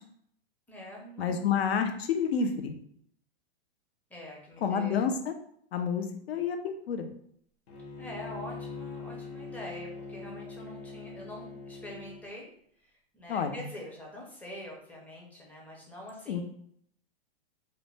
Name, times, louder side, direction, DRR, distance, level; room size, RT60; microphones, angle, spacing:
voice 1, 0.7-1.5 4.1-5.0 8.0-12.5 12.8-16.4, left 1 dB, 5° left, -3 dB, 0.5 m, -45 dB
voice 2, 1.2-2.8 4.6-5.3 5.7-7.1 13.3-13.6 16.3-16.4, left 6 dB, 80° left, 6 dB, 0.5 m, -29 dB
Bowed string instrument, 7.7-12.2, left 4 dB, 45° left, 0.7 m, -42 dB
2.5 x 2.1 x 3.1 m, 0.66 s
hypercardioid pair, 130°, 30 cm